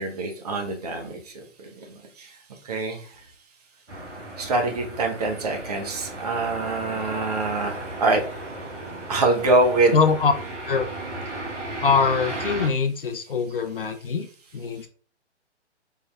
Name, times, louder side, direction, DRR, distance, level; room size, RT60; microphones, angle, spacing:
voice 1, 0.0-2.4 2.6-3.1 4.4-8.2 9.1-10.0, right 2 dB, 35° right, 3 dB, 0.8 m, -25 dB
sound 1, 3.9-12.7, right 2 dB, 75° right, 1.2 m, -35 dB
voice 2, 9.9-10.3 10.7-10.9 11.8-14.3 14.5-14.9, left 5 dB, 50° left, 8 dB, 0.5 m, -23 dB
4.6 x 3.1 x 2.2 m, 0.43 s
figure-of-eight pair, 130°, 36 cm